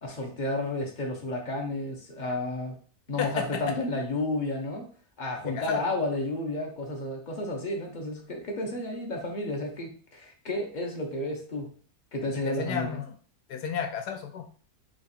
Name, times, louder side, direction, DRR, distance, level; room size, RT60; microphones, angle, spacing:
voice 1, 0.0-2.8 3.1-4.9 5.2-11.7 12.1-13.0, left 2 dB, 40° left, 1 dB, 0.7 m, -32 dB
voice 2, 3.2-3.6 5.4-5.8 12.4-13.1 13.5-14.4, left 7 dB, 85° left, 4 dB, 1.2 m, -32 dB
3.5 x 2.4 x 4.1 m, 0.42 s
omnidirectional pair, 1.7 m